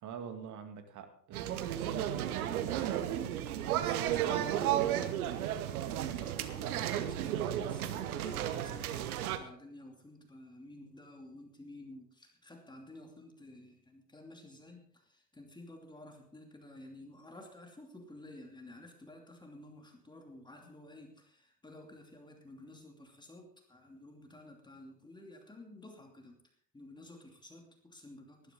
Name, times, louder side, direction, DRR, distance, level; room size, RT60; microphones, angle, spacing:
voice 1, 0.0-4.5, right 7 dB, 35° right, 7 dB, 2.2 m, -46 dB
sound 1, 1.3-9.4, right 11 dB, 60° right, 1.3 m, -33 dB
voice 2, 4.3-5.2 5.7-26.4 26.7-28.5, left 1 dB, 10° left, 2 dB, 2.7 m, -52 dB
19.0 x 11.5 x 3.8 m, 0.63 s
figure-of-eight pair, 75°, 50 cm